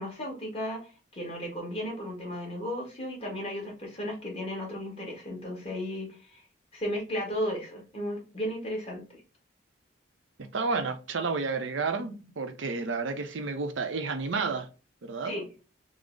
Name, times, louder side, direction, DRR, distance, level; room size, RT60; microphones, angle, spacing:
voice 1, 0.0-6.4 6.7-9.2 15.2-15.4, equal, 30° left, 1.4 m, -35 dB
voice 2, 10.4-14.7 15.0-15.4, right 4 dB, 75° right, 0.6 m, -31 dB
3.7 x 2.0 x 3.6 m
head